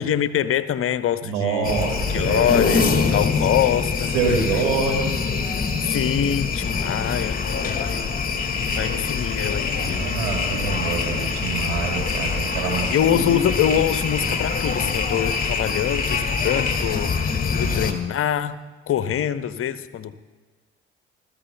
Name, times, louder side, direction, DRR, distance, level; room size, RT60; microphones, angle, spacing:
voice 1, 0.0-1.7 2.1-4.2 4.5-4.6 5.8-8.1 8.8-10.3 12.9-18.6 18.9-20.2, left 10 dB, 45° left, 12 dB, 0.9 m, -24 dB
voice 2, 1.2-2.9 4.1-5.2 7.9-8.1 9.7-13.6 17.5-17.9, right 5 dB, 75° right, -1 dB, 2.8 m, -26 dB
sound 1, 1.6-17.9, left 5 dB, 30° left, 1.8 m, -24 dB
28.5 x 14.0 x 2.3 m, 1.4 s
hypercardioid pair, 50°, 30 cm